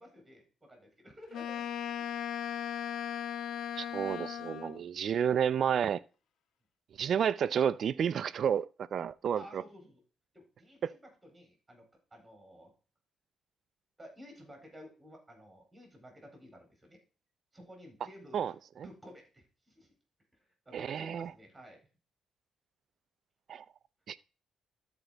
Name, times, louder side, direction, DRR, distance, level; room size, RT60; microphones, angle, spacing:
voice 1, 0.0-2.1 9.3-10.0 10.3-12.7 14.0-17.0 17.5-18.5 18.8-19.9 20.3-21.9, equal, 10° right, 4.3 m, -53 dB
Wind instrument woodwind instrument, 1.3-4.9, left 9 dB, 75° left, 0.7 m, -37 dB
voice 2, 3.8-6.0 7.0-8.7 8.9-9.6 10.8-10.9 18.3-18.5 20.7-21.3 23.5-23.6 24.1-24.2, right 8 dB, 60° right, 0.5 m, -30 dB
13.0 x 4.5 x 3.9 m
cardioid pair, 90°, 0 cm